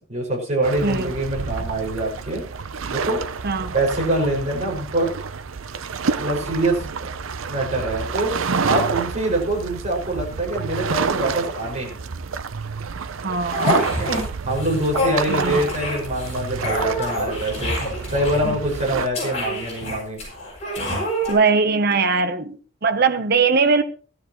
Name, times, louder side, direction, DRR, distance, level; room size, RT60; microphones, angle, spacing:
voice 1, 0.1-2.5 2.9-3.2 3.7-5.1 6.2-7.1 7.5-8.4 8.6-12.0 14.0-14.1 14.5-17.8 18.1-20.2, right 1 dB, 35° right, 5.5 m, -24 dB
sound 1, 0.6-19.1, right 5 dB, 90° right, 0.6 m, -29 dB
voice 2, 3.4-3.7 13.2-13.8 15.3-15.6 21.3-23.8, right 4 dB, 50° right, 0.9 m, -20 dB
sound 2, 13.5-14.2 14.5-21.3, left 1 dB, 35° left, 7.6 m, -27 dB
17.0 x 12.5 x 3.0 m
head